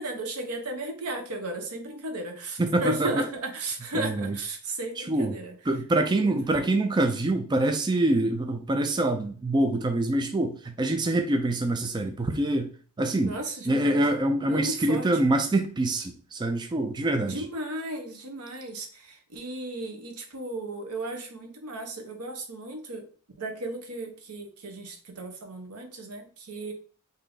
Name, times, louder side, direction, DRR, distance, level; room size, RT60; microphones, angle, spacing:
voice 1, 0.0-5.5 6.1-6.7 13.2-14.0 14.5-15.3 17.2-23.1 23.4-26.7, right 2 dB, 85° right, 5 dB, 0.9 m, -35 dB
voice 2, 2.6-3.2 3.9-4.4 5.0-5.4 5.7-12.7 13.0-13.4 13.7-17.5, right 1 dB, 20° right, 5 dB, 0.3 m, -25 dB
3.4 x 2.7 x 3.8 m, 0.41 s
head